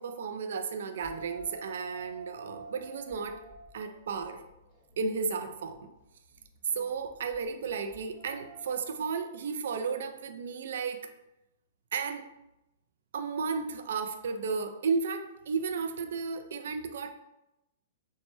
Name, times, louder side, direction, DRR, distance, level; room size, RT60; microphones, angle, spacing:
voice 1, 0.0-3.4 3.7-4.4 5.0-5.9 6.7-11.1 11.9-12.2 13.1-17.1, right 5 dB, 65° right, 7 dB, 0.3 m, -33 dB
sound 1, 1.0-8.8, right 2 dB, 25° right, 0.9 m, -50 dB
3.2 x 2.1 x 3.0 m, 0.90 s
figure-of-eight pair, 110°, 0 cm